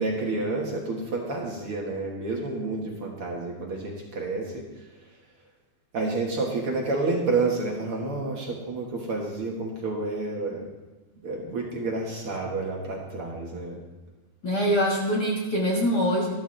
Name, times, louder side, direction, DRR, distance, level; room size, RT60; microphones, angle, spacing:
voice 1, 0.0-5.2 5.9-10.7 11.2-13.8, right 3 dB, 50° right, -1 dB, 2.0 m, -29 dB
voice 2, 14.4-16.3, equal, 40° left, -3 dB, 1.6 m, -24 dB
13.0 x 13.0 x 3.3 m, 1.1 s
omnidirectional pair, 3.6 m